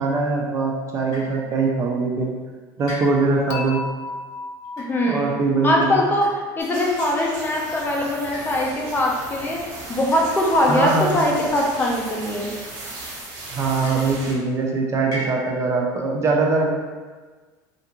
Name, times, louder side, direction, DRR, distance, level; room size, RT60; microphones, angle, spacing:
voice 1, 0.0-2.3 2.8-3.8 5.1-6.0 10.7-11.2 13.5-16.7, right 3 dB, 30° right, -1 dB, 0.5 m, -22 dB
sound 1, 1.1-1.5 2.9-3.5 4.6-5.0 6.2-6.8 8.3-9.1 10.1-10.7 12.1-12.7 13.8-14.3 15.1-15.7, equal, 40° left, 1.5 m, -38 dB
Dishes pots and pans / Chink clink, 3.5-6.7, left 3 dB, 65° left, 0.4 m, -35 dB
voice 2, 4.8-5.3 5.6-6.3 6.6-9.6 9.9-12.5, left 1 dB, 20° left, -2 dB, 0.6 m, -21 dB
sound 2, 6.6-14.3, right 2 dB, 75° right, 1.2 m, -36 dB
3.3 x 2.5 x 2.9 m, 1.4 s
supercardioid pair, 120°, 10 cm